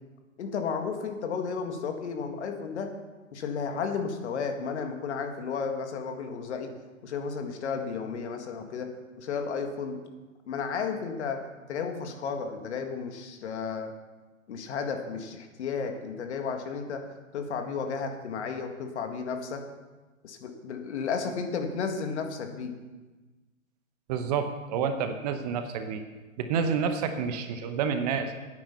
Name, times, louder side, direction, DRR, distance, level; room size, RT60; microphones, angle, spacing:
voice 1, 0.4-2.9 3.3-6.7 7.0-10.0 10.5-13.9 14.5-19.6 20.2-22.7, left 5 dB, 55° left, 5 dB, 1.7 m, -33 dB
voice 2, 24.1-26.0 26.4-28.3, right 6 dB, 30° right, 8 dB, 0.8 m, -29 dB
11.5 x 9.4 x 5.7 m, 1.2 s
hypercardioid pair, 130°, 42 cm